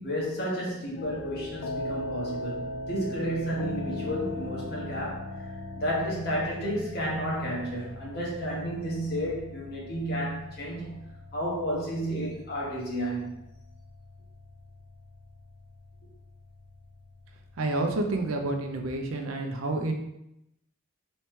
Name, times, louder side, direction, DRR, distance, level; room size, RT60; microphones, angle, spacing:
voice 1, 0.0-2.6 2.9-5.5 5.7-11.0 11.3-13.4, equal, 50° left, -5 dB, 1.1 m, -32 dB
sound 1, 1.0-18.9, left 1 dB, 80° left, 0.4 m, -40 dB
voice 2, 17.6-19.9, right 2 dB, 75° right, 3 dB, 0.5 m, -29 dB
3.2 x 3.1 x 3.1 m, 0.84 s
head